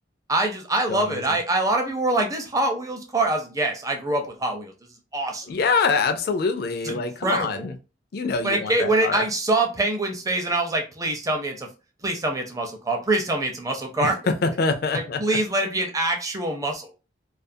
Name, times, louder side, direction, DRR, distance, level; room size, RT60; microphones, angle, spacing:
voice 1, 0.3-4.7 5.1-5.5 6.8-7.7 8.4-11.7 12.0-14.2 14.9-16.9, right 2 dB, 20° right, 3 dB, 0.5 m, -25 dB
voice 2, 0.9-1.2 5.5-7.7 8.1-9.2 14.0-14.1 14.4-15.2, left 4 dB, 55° left, 8 dB, 0.4 m, -25 dB
2.4 x 2.3 x 2.6 m, 0.30 s
head